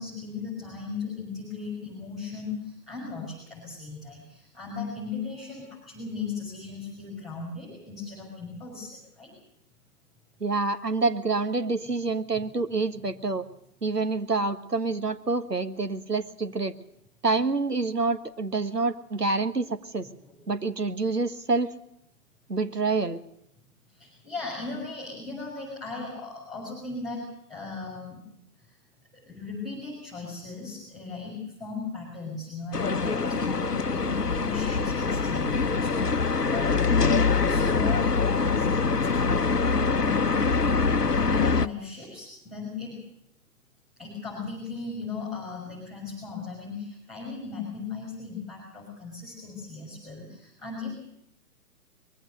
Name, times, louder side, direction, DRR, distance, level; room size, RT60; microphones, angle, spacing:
voice 1, 0.0-9.3 20.3-20.4 23.9-28.2 28.7-28.8 29.1-40.6 41.2-43.0 44.0-50.9, left 4 dB, ahead, -3 dB, 5.5 m, -37 dB
voice 2, 10.4-13.4 13.8-16.7 17.2-20.1 20.5-21.7 22.5-23.2, right 3 dB, 85° right, 10 dB, 1.6 m, -27 dB
sound 1, 32.7-41.7, left 4 dB, 90° left, 0.9 m, -24 dB
22.0 x 15.5 x 7.8 m, 0.77 s
figure-of-eight pair, 130°, 46 cm